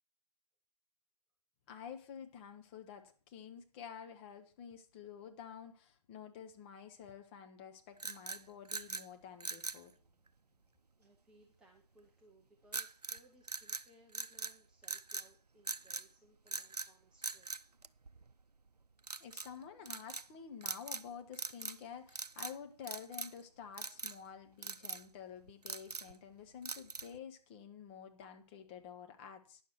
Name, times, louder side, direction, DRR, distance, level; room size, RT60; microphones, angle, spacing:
voice 1, 1.7-9.9 19.2-29.6, left 7 dB, 20° left, 0.9 m, -50 dB
sound 1, 8.0-9.1 9.4-9.8 12.7-13.2 13.5-14.6 14.8-15.3 15.7-16.1 16.5-16.9 17.2-18.4 19.0-19.5 19.9-20.3 20.6-21.1 21.3-21.8 22.1-22.6 22.9-23.4 23.8-24.2 24.6-25.0 25.5-26.2 26.6-27.2, right 4 dB, 85° right, 0.5 m, -42 dB
voice 2, 11.0-17.5, right 1 dB, 5° right, 0.6 m, -66 dB
10.5 x 6.9 x 6.1 m
figure-of-eight pair, 140°, 20 cm